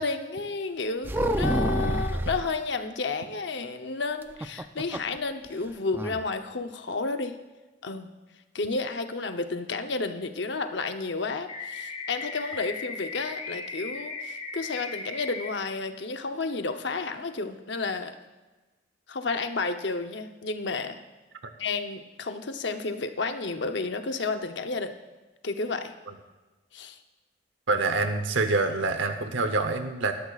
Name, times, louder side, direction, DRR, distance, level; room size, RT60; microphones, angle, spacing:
voice 1, 0.0-7.4 7.8-8.1 8.5-18.1 19.1-21.0 21.6-25.0 25.4-25.9 26.7-27.0, left 3 dB, 70° left, 7 dB, 0.8 m, -31 dB
sound 1, 1.0-2.5 4.2-5.2 5.5-5.6 5.9-6.2, right 1 dB, 10° right, 0.4 m, -28 dB
sound 2, 11.5-15.5, left 4 dB, 30° left, 1.1 m, -37 dB
voice 2, 27.7-30.1, right 3 dB, 85° right, 7 dB, 0.9 m, -26 dB
18.5 x 12.5 x 2.4 m, 1.2 s
head